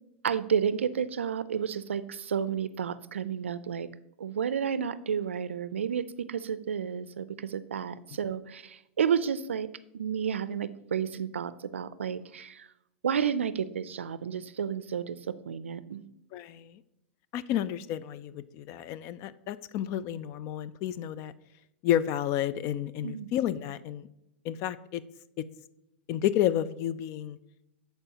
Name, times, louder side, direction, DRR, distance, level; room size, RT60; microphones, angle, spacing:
voice 1, 0.2-3.9 4.2-9.7 9.9-12.7 13.0-16.0 23.0-23.3, right 7 dB, 85° right, 15 dB, 0.4 m, -31 dB
voice 2, 16.3-16.8 17.3-21.3 21.8-24.1 24.4-25.0 25.4-25.5 26.1-27.4, left 11 dB, 45° left, 16 dB, 0.4 m, -31 dB
12.0 x 4.5 x 2.8 m, 0.85 s
hypercardioid pair, 105°, 6 cm